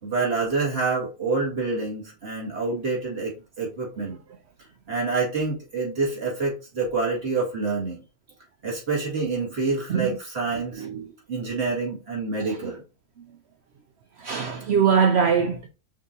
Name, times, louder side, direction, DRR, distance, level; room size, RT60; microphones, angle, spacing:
voice 1, 0.0-4.2 4.9-8.0 8.6-10.9 11.3-12.8, right 3 dB, 45° right, 2.0 m, -27 dB
voice 2, 10.8-11.1 14.2-15.7, right 6 dB, 65° right, 0.6 m, -22 dB
6.2 x 2.7 x 2.6 m
omnidirectional pair, 1.5 m